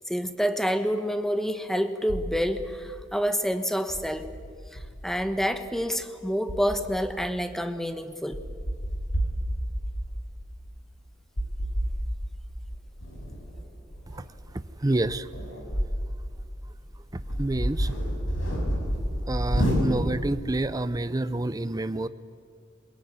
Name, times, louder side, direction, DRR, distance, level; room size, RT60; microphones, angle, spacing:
voice 1, 0.1-4.3 4.7-8.4, equal, ahead, 9 dB, 1.2 m, -28 dB
sound 1, 2.1-2.6 3.9-5.8 6.5-7.1 7.8-7.9 8.3-10.3 11.4-12.0 12.7-16.1 16.5-16.6 17.1-20.3, equal, 85° left, 6.5 m, -30 dB
voice 2, 14.8-15.2 17.4-17.9 19.3-22.1, right 2 dB, 20° right, 13 dB, 0.6 m, -28 dB
23.5 x 21.0 x 9.6 m, 2.2 s
head